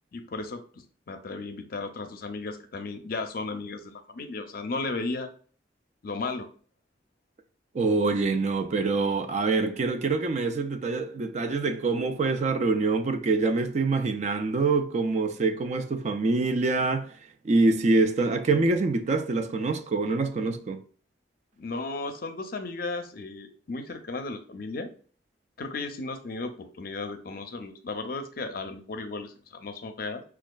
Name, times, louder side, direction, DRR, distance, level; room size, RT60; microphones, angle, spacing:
voice 1, 0.1-0.6 1.1-5.3 6.0-6.5 21.6-24.9 25.6-30.2, left 3 dB, 55° left, 0.5 m, -35 dB
voice 2, 7.7-17.1 17.4-20.8, right 3 dB, 40° right, 0.3 m, -25 dB
5.2 x 2.3 x 2.3 m
head